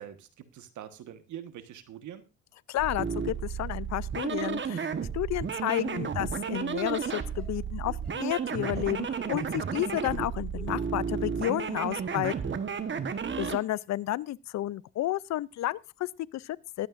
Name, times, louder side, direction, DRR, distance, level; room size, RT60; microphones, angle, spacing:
voice 1, 0.0-2.2 12.3-12.7, right 10 dB, 75° right, 1.4 m, -45 dB
voice 2, 2.7-12.6 13.4-16.9, left 14 dB, 65° left, 0.5 m, -32 dB
sound 1, 2.8-13.6, right 6 dB, 40° right, 1.2 m, -33 dB
Laughter, 7.1-11.0 11.5-11.9, left 1 dB, 5° left, 6.6 m, -49 dB
21.0 x 8.8 x 2.5 m
cardioid pair, 90°, 30 cm